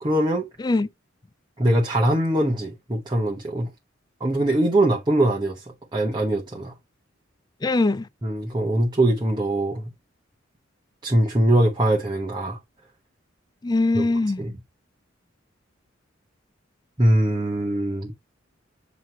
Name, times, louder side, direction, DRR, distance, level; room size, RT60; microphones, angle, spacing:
voice 1, 0.0-0.4 1.6-3.7 4.2-5.6 5.9-6.7 8.2-9.9 11.0-12.6 13.9-14.0 14.4-14.5 17.0-18.1, right 1 dB, 20° right, 0.9 m, -22 dB
voice 2, 7.6-8.0 13.6-14.4, left 2 dB, 20° left, 0.4 m, -21 dB
7.6 x 3.0 x 4.2 m
head